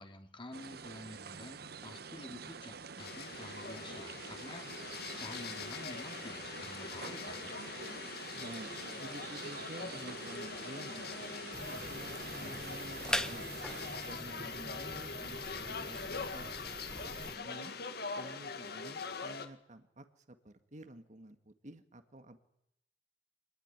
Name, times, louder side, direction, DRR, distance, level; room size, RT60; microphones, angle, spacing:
voice 1, 0.0-7.6, left 1 dB, 30° left, 5 dB, 2.9 m, -50 dB
sound 1, 0.5-14.2, right 5 dB, 65° right, 1.0 m, -47 dB
sound 2, 3.0-19.5, left 5 dB, 65° left, 2.1 m, -43 dB
voice 2, 8.3-11.2 11.6-13.5 14.0-16.5 17.0-17.7 18.2-22.4, right 1 dB, 45° right, 9 dB, 2.0 m, -51 dB
sound 3, 11.5-17.4, left 1 dB, 5° left, 1.3 m, -42 dB
25.0 x 20.0 x 9.9 m, 0.78 s
head